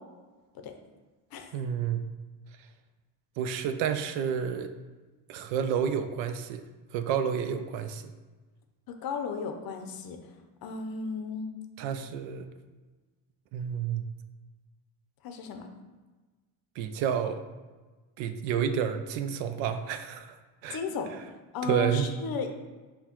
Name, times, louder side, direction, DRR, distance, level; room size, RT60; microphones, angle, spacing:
voice 1, 1.5-2.0 3.4-4.7 5.3-6.6 6.9-8.0 11.8-12.5 13.5-14.0 16.8-17.4 18.2-20.4 20.6-20.8 21.1-21.2 21.6-22.1, right 8 dB, 70° right, 9 dB, 0.5 m, -30 dB
voice 2, 8.9-10.2 10.6-11.5 15.2-15.7 20.7-21.1 21.5-22.5, left 5 dB, 50° left, 5 dB, 0.6 m, -34 dB
5.5 x 2.3 x 2.9 m, 1.3 s
supercardioid pair, 80°, 49 cm